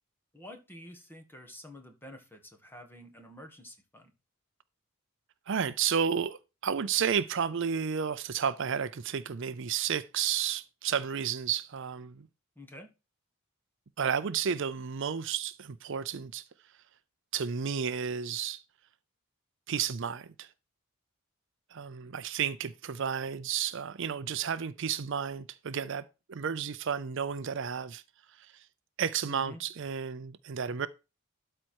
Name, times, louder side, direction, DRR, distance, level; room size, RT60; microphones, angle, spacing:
voice 1, 0.3-4.1 12.5-12.9 29.3-29.6, left 1 dB, 10° left, 1.7 m, -48 dB
voice 2, 5.5-12.3 14.0-16.5 17.3-18.6 19.7-20.5 21.7-28.0 28.3-28.7 29.0-30.9, right 7 dB, 55° right, 0.5 m, -32 dB
12.5 x 4.4 x 4.6 m
head